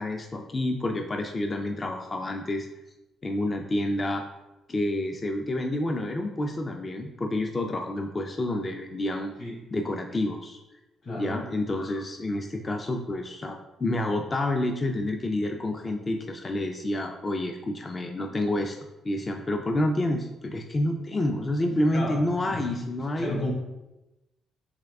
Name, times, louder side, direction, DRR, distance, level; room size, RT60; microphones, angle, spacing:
voice 1, 0.0-2.7 3.2-4.2 4.7-9.3 9.7-10.6 11.2-18.8 19.0-23.3, left 1 dB, 30° left, 3 dB, 0.4 m, -28 dB
voice 2, 11.0-11.4 21.8-22.8 23.2-23.5, left 1 dB, 50° left, -2 dB, 1.4 m, -33 dB
3.5 x 3.2 x 3.4 m, 0.98 s
cardioid pair, 90°, 0 cm